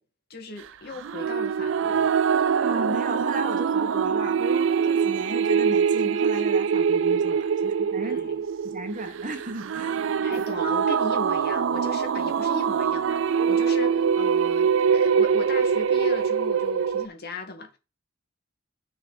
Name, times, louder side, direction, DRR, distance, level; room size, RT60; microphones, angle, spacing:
voice 1, 0.3-2.1 8.0-8.4 10.2-17.8, left 3 dB, 50° left, 2.3 m, -38 dB
sound 1, 1.0-17.1, right 6 dB, 65° right, 0.4 m, -23 dB
voice 2, 2.6-8.2 8.6-10.5, right 2 dB, 40° right, 1.4 m, -35 dB
7.0 x 4.6 x 6.4 m
head